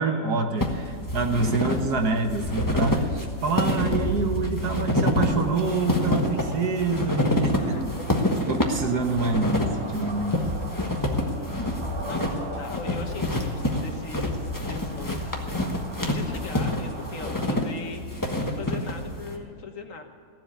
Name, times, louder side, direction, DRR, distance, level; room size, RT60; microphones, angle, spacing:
voice 1, 0.0-7.9 8.5-10.4, right 3 dB, 75° right, 5 dB, 1.8 m, -26 dB
sound 1, 0.6-19.4, left 1 dB, 15° left, 1.2 m, -27 dB
sound 2, 0.7-19.1, left 3 dB, 15° right, 2.8 m, -44 dB
sound 3, 5.2-17.6, right 1 dB, 40° right, 1.8 m, -41 dB
voice 2, 7.6-8.4 12.0-20.0, left 4 dB, 55° left, 4 dB, 1.6 m, -40 dB
15.5 x 7.7 x 9.6 m, 2.4 s
omnidirectional pair, 1.7 m